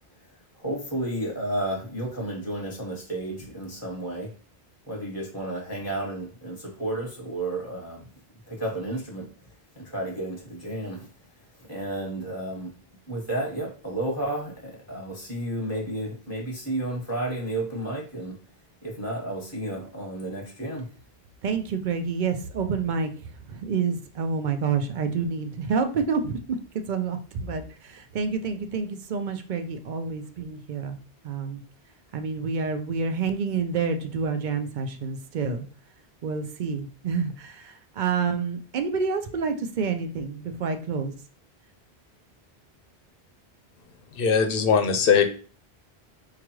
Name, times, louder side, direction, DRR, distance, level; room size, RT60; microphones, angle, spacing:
voice 1, 0.6-4.3 4.9-8.0 8.5-9.3 9.7-11.1 11.7-12.7 13.1-18.4 18.8-20.9, right 1 dB, 15° right, -2 dB, 1.1 m, -32 dB
voice 2, 21.4-31.0 31.2-31.6 32.1-35.7 36.2-41.1, right 5 dB, 60° right, 7 dB, 0.6 m, -28 dB
voice 3, 44.1-45.2, left 6 dB, 65° left, 7 dB, 0.7 m, -20 dB
4.8 x 2.3 x 3.0 m, 0.39 s
omnidirectional pair, 1.1 m